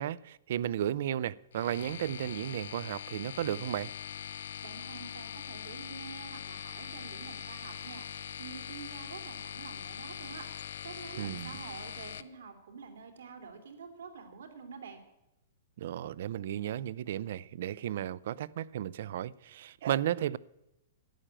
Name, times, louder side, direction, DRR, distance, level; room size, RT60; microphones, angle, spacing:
voice 1, 0.0-3.9 11.2-11.5 15.8-20.4, right 11 dB, 60° right, 0.4 m, -34 dB
sound 1, 1.5-12.2, left 9 dB, 80° left, 0.6 m, -42 dB
voice 2, 4.3-15.0, right 5 dB, 85° right, 2.8 m, -47 dB
11.5 x 8.9 x 8.8 m
hypercardioid pair, 155°, 0 cm